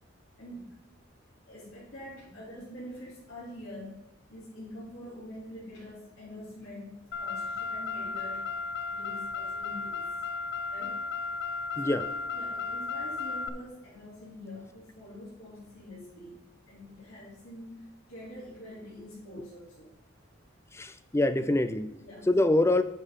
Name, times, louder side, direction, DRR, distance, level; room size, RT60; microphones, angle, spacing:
voice 1, 1.5-8.5 8.9-10.1 10.7-11.0 11.8-12.0 12.3-16.4 16.7-19.9 21.4-21.5 22.0-22.5, left 1 dB, 80° left, -10 dB, 3.3 m, -45 dB
Car, 7.1-13.5, left 4 dB, 60° left, 0.7 m, -34 dB
voice 2, 20.7-21.9 22.3-22.8, left 1 dB, 15° left, 11 dB, 0.5 m, -25 dB
9.7 x 6.2 x 3.8 m, 0.88 s
head